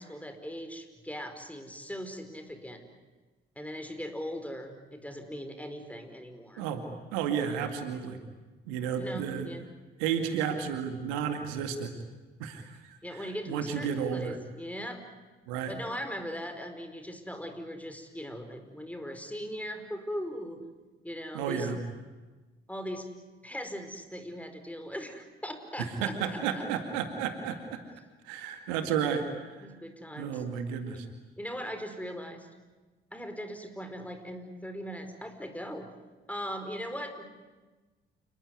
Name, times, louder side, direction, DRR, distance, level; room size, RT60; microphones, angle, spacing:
voice 1, 0.0-2.8 3.5-6.7 7.9-8.1 9.0-9.7 13.0-15.0 15.7-20.6 21.0-21.7 22.7-23.1 23.4-26.6 29.6-30.4 31.4-32.5 33.1-35.9 36.3-37.2, equal, 5° left, 7 dB, 4.9 m, -39 dB
voice 2, 7.1-8.2 8.7-9.5 10.0-11.9 12.4-14.4 15.5-15.7 21.3-21.8 25.8-27.8 28.2-29.3 29.5-29.7 30.2-31.1, right 7 dB, 75° right, 7 dB, 2.2 m, -32 dB
29.0 x 20.0 x 9.7 m, 1.3 s
figure-of-eight pair, 45°, 29 cm